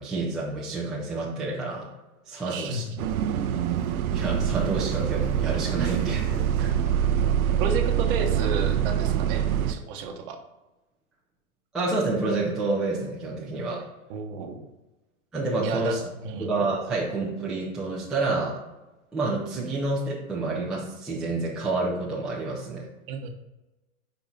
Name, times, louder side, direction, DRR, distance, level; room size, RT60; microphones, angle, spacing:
voice 1, 0.0-1.9 2.3-2.8 4.1-6.7 11.7-13.8 15.3-16.0 16.4-18.6 19.1-22.9, right 3 dB, ahead, -7 dB, 0.4 m, -29 dB
voice 2, 2.5-3.0 7.6-10.4 14.1-14.7 15.6-16.5 23.1-23.3, right 4 dB, 40° right, 5 dB, 1.0 m, -32 dB
Bus, 3.0-9.7, right 9 dB, 80° right, 0.6 m, -25 dB
5.4 x 4.7 x 3.9 m, 1.0 s
hypercardioid pair, 130°, 43 cm